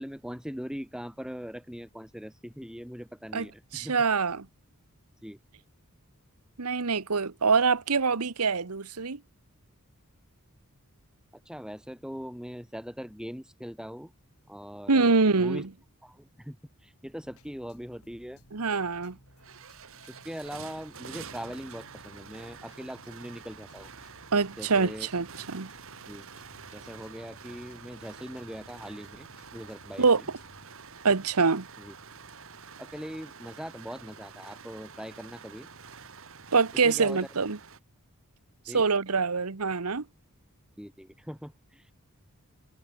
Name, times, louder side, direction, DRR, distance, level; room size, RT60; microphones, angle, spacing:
voice 1, 0.0-4.0 5.2-5.4 11.4-14.1 14.5-15.7 16.0-18.4 20.1-23.9 24.6-25.1 26.1-26.3 26.7-29.3 29.5-30.3 31.8-31.9 32.8-35.7 36.7-37.2 38.7-38.9 40.8-41.9, equal, 5° right, 4.3 m, -41 dB
voice 2, 3.7-4.5 6.6-9.2 14.9-15.7 18.5-19.2 24.3-25.7 30.0-30.2 31.0-31.7 36.5-37.6 38.7-40.0, right 4 dB, 90° right, 1.2 m, -25 dB
sound 1, 17.2-30.7, left 1 dB, 75° left, 5.5 m, -58 dB
sound 2, 19.3-37.8, right 6 dB, 65° right, 2.8 m, -48 dB
head